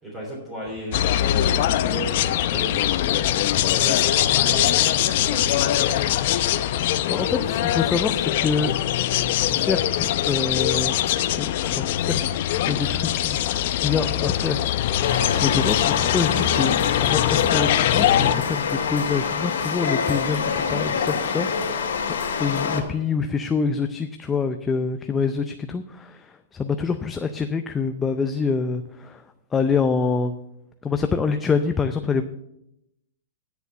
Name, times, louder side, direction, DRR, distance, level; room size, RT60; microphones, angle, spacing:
voice 1, 0.0-2.8 3.6-6.0 7.2-7.7, right 1 dB, 15° right, -4 dB, 3.5 m, -35 dB
sound 1, 0.9-18.3, left 12 dB, 55° left, 0.6 m, -22 dB
voice 2, 7.1-8.7 9.4-11.0 11.4-12.2 12.7-13.4 13.8-15.0 15.4-16.7 17.0-29.2 29.5-30.3 30.8-32.2, left 5 dB, 15° left, 7 dB, 0.5 m, -26 dB
sound 2, 15.0-22.8, left 6 dB, 80° left, 2.3 m, -26 dB
10.5 x 6.9 x 6.9 m, 0.83 s
hypercardioid pair, 150°, 0 cm